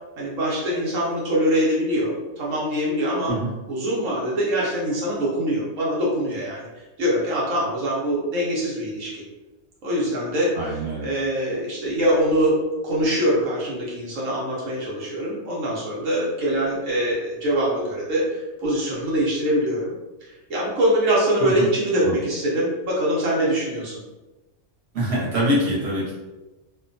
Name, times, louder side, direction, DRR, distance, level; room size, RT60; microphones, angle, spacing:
voice 1, 0.2-3.3 3.7-9.2 9.8-10.6 11.0-12.5 12.8-19.9 20.2-24.0, equal, 85° right, -5 dB, 1.1 m, -23 dB
voice 2, 10.5-11.1 21.4-21.7 22.0-22.1 24.9-26.1, equal, 60° right, -6 dB, 1.2 m, -24 dB
2.6 x 2.2 x 2.5 m, 1.1 s
omnidirectional pair, 1.3 m